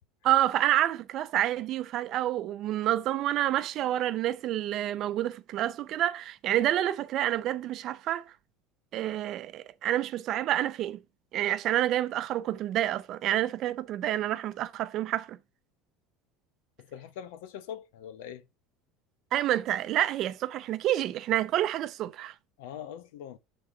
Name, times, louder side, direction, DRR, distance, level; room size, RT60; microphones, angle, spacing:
voice 1, 0.2-8.3 8.9-11.0 11.3-15.4 19.3-22.3, right 13 dB, 50° right, 0.5 m, -28 dB
voice 2, 16.8-18.5 22.6-23.4, left 9 dB, 85° left, 0.8 m, -42 dB
7.1 x 3.8 x 4.9 m
supercardioid pair, 130°, 0 cm